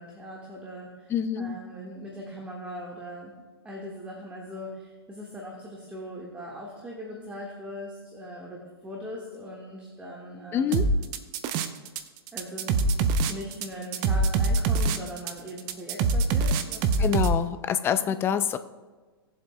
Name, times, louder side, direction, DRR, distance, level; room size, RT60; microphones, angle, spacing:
voice 1, 0.0-10.9 12.3-12.9 13.3-17.2 17.8-18.2, equal, 10° right, -2 dB, 1.5 m, -40 dB
voice 2, 1.1-1.6 10.5-10.9 17.0-18.6, left 8 dB, 20° left, 11 dB, 0.4 m, -26 dB
sound 1, 10.7-12.0 12.3-17.3, right 3 dB, 35° right, 0.6 m, -24 dB
18.5 x 7.4 x 2.2 m, 1.4 s
figure-of-eight pair, 105°, 13 cm